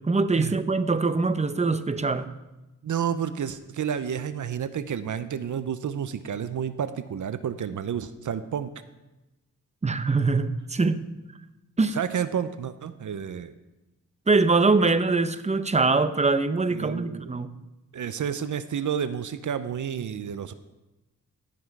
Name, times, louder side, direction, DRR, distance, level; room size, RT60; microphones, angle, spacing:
voice 1, 0.1-2.3 9.8-11.1 11.8-12.0 14.3-17.5, right 3 dB, 20° right, 12 dB, 0.7 m, -23 dB
voice 2, 2.8-8.7 11.9-13.5 16.7-17.4 17.9-20.5, right 8 dB, 60° right, 12 dB, 0.7 m, -30 dB
16.5 x 6.0 x 4.7 m, 1.0 s
cardioid pair, 70°, 34 cm